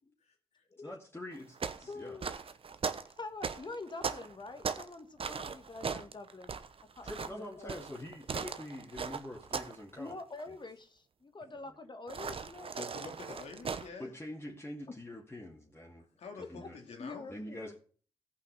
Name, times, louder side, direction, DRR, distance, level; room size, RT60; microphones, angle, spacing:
voice 1, 0.8-2.2 7.0-10.2 10.5-10.6 11.6-11.8 14.0-16.0 16.4-16.8 17.3-17.8, left 1 dB, 20° left, -3 dB, 2.5 m, -45 dB
sound 1, 1.3-4.9 5.2-9.8 10.1-10.4 12.1-13.9, right 5 dB, 55° right, 0.9 m, -38 dB
voice 2, 1.9-2.3 3.2-6.6 7.0-7.7 10.0-12.8 16.6-17.8, left 3 dB, 40° left, 7 dB, 1.6 m, -46 dB
voice 3, 12.8-14.1 16.2-17.3, left 5 dB, 75° left, 3 dB, 2.4 m, -47 dB
14.5 x 5.7 x 5.5 m, 0.42 s
supercardioid pair, 40°, 11 cm